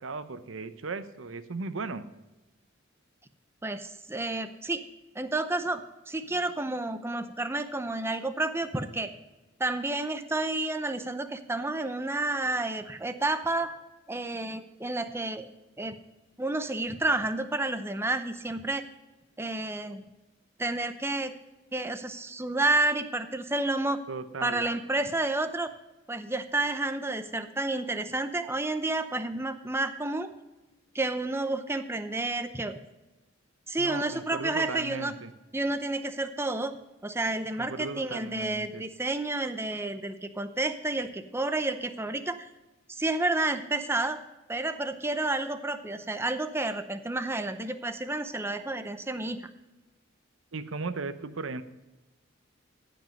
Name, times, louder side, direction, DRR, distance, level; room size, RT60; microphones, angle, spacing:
voice 1, 0.0-2.1 24.1-24.6 33.8-35.3 37.6-38.8 50.5-51.6, right 3 dB, 80° right, 11 dB, 0.7 m, -37 dB
voice 2, 3.6-4.8 5.2-9.1 9.6-13.8 14.1-15.5 15.8-16.0 16.4-18.8 19.4-20.1 20.6-21.3 21.7-24.0 24.4-25.7 26.1-30.3 30.9-32.8 33.7-35.1 35.5-36.7 37.0-42.5 42.9-44.2 44.5-49.5, right 2 dB, 15° right, 9 dB, 0.6 m, -30 dB
15.0 x 5.4 x 5.3 m, 1.1 s
head